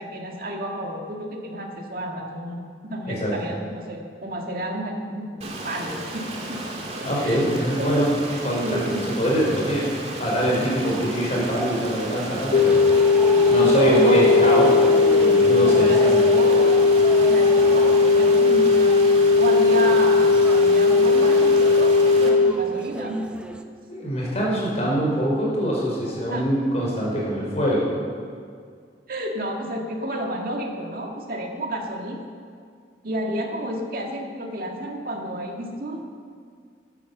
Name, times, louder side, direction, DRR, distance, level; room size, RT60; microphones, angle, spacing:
voice 1, 0.0-6.6 7.2-7.4 7.8-8.0 8.3-9.3 10.9-11.0 13.3-14.6 15.6-16.8 17.2-19.0 19.4-23.3 26.3-26.5 29.1-32.2 33.0-36.0, right 1 dB, 55° right, 1 dB, 1.9 m, -30 dB
Stream, 5.4-22.3, right 2 dB, 40° right, 2.1 m, -34 dB
voice 2, 7.0-8.2 8.4-8.9 9.2-12.8 13.5-14.7 15.1-16.1 23.9-27.9, equal, 40° left, -4 dB, 4.9 m, -24 dB
sound 1, 12.5-22.5, left 4 dB, 60° left, 0.9 m, -17 dB
sound 2, 12.5-23.6, equal, 5° right, 0.7 m, -33 dB
13.0 x 11.0 x 7.1 m, 2.1 s
head